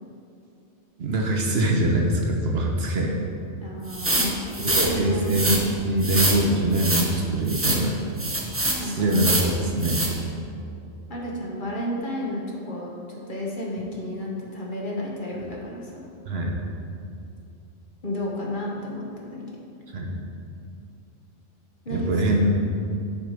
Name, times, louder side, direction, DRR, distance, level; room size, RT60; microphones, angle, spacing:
voice 1, 1.0-3.1 4.6-8.0 8.8-10.0 16.3-16.5 19.9-20.1 21.9-22.6, right 1 dB, 60° right, 0 dB, 1.0 m, -23 dB
voice 2, 3.6-5.3 8.8-9.1 11.1-16.0 18.0-19.4 21.8-22.6, left 1 dB, 45° left, -3 dB, 1.1 m, -32 dB
sound 1, 3.9-4.9 5.3-5.6 6.0-6.4 6.7-7.1 7.5-7.8 8.2-8.8 9.1-9.5 9.8-10.1, right 2 dB, 15° right, 0.5 m, -24 dB
7.4 x 4.7 x 5.2 m, 2.5 s
omnidirectional pair, 1.3 m